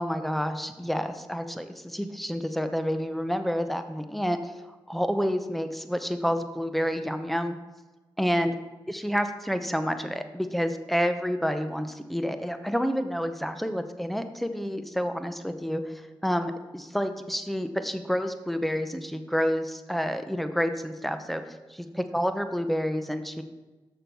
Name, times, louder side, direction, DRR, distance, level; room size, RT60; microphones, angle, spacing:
voice 1, 0.0-4.5 4.9-7.6 8.2-8.6 8.9-15.9 16.2-23.4, equal, ahead, 8 dB, 0.9 m, -29 dB
6.6 x 6.2 x 5.3 m, 1.2 s
supercardioid pair, 45°, 10 cm